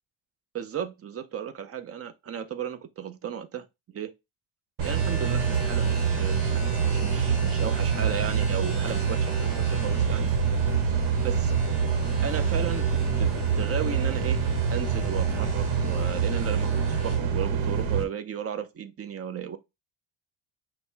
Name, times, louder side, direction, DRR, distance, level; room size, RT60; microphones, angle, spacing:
voice 1, 0.5-4.1 4.8-10.4 11.2-11.6 12.2-14.4 14.7-19.6, right 8 dB, 30° right, 0.5 m, -35 dB
sound 1, 4.8-17.2, equal, 5° right, 2.7 m, -38 dB
sound 2, 4.8-18.0, right 6 dB, 85° right, 0.9 m, -26 dB
6.1 x 2.0 x 3.3 m
cardioid pair, 125°, 46 cm